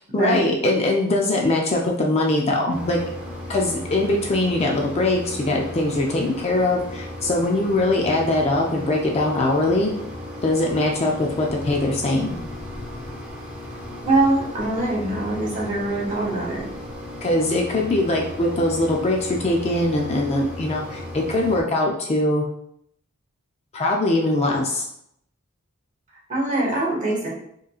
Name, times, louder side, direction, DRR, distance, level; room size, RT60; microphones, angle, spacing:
voice 1, 0.1-3.0 3.5-9.9 10.4-12.4 17.2-22.4 23.7-24.9, left 2 dB, 30° left, 0 dB, 0.4 m, -22 dB
Mechanisms, 2.7-21.6, left 1 dB, 5° right, 0.7 m, -35 dB
voice 2, 14.0-16.6 26.3-27.3, right 2 dB, 35° right, -5 dB, 1.5 m, -23 dB
4.8 x 3.0 x 2.3 m, 0.72 s
head